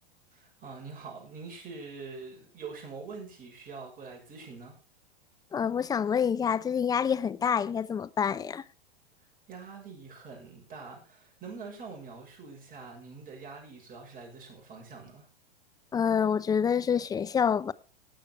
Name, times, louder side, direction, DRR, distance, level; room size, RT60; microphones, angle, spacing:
voice 1, 0.3-4.8 9.5-15.3, right 4 dB, 30° right, 6.3 m, -44 dB
voice 2, 5.5-8.6 15.9-17.7, left 7 dB, 15° left, 0.5 m, -27 dB
18.0 x 6.4 x 4.6 m
hypercardioid pair, 105°, 30 cm